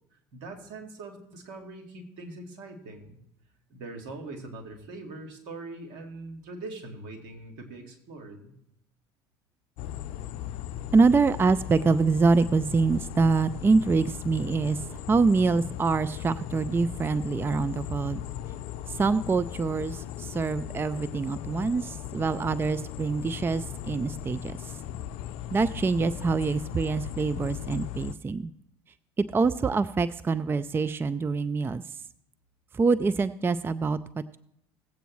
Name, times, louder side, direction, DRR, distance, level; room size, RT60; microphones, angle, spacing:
voice 1, 0.3-3.2 3.7-8.5, right 2 dB, 70° right, 3 dB, 2.1 m, -42 dB
sound 1, 9.8-28.1, left 11 dB, 65° left, 0.5 m, -38 dB
voice 2, 10.9-18.2 18.9-24.7 25.5-28.5 29.2-32.0 32.7-34.4, right 4 dB, 20° right, 16 dB, 0.4 m, -25 dB
17.0 x 8.0 x 3.1 m, 0.79 s
hypercardioid pair, 75°, 12 cm